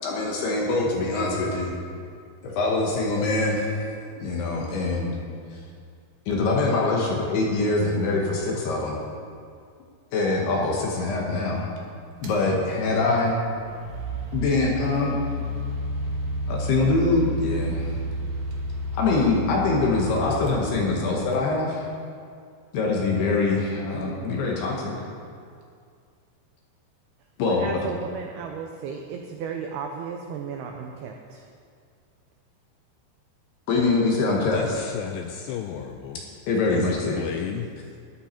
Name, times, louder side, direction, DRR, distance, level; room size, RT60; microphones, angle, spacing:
voice 1, 0.0-1.7 2.4-5.2 5.5-5.6 6.3-9.0 10.1-11.6 12.2-13.4 14.3-15.2 16.5-18.0 19.0-21.9 22.7-24.9 27.4-27.8 33.7-34.6 36.5-37.2, left 3 dB, 70° left, -2 dB, 2.9 m, -24 dB
sound 1, 12.2-12.4 13.3-21.4, left 1 dB, 70° right, 2.0 m, -31 dB
voice 2, 27.5-31.4, right 6 dB, 90° right, 3 dB, 2.2 m, -34 dB
voice 3, 34.5-36.2 36.7-38.0, left 9 dB, 85° left, 4 dB, 2.4 m, -33 dB
14.0 x 11.5 x 4.4 m, 2.3 s
omnidirectional pair, 5.5 m